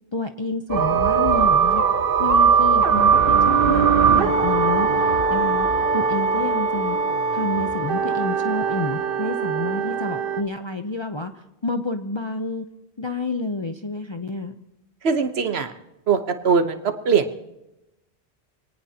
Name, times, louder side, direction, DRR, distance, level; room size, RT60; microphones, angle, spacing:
voice 1, 0.1-1.8 2.2-5.7 5.9-7.0 7.3-12.6 13.0-14.5, left 3 dB, 30° left, 6 dB, 0.7 m, -29 dB
sound 1, 0.7-10.4, right 6 dB, 60° right, 1.2 m, -20 dB
voice 2, 15.0-15.7 16.1-17.4, right 5 dB, 80° right, 8 dB, 1.3 m, -21 dB
25.0 x 18.5 x 2.9 m, 0.93 s
omnidirectional pair, 1.0 m